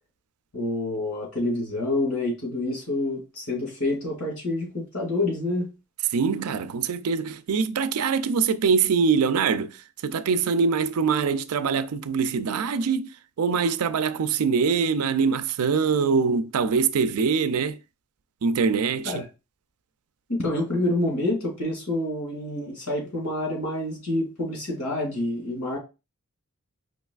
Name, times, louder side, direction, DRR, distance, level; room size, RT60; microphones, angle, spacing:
voice 1, 0.5-5.7 19.0-19.2 20.3-25.8, left 1 dB, 85° left, 2.4 m, -27 dB
voice 2, 6.1-13.1 13.4-17.8 18.4-19.2, right 5 dB, 80° right, 0.4 m, -23 dB
5.1 x 3.1 x 2.4 m
head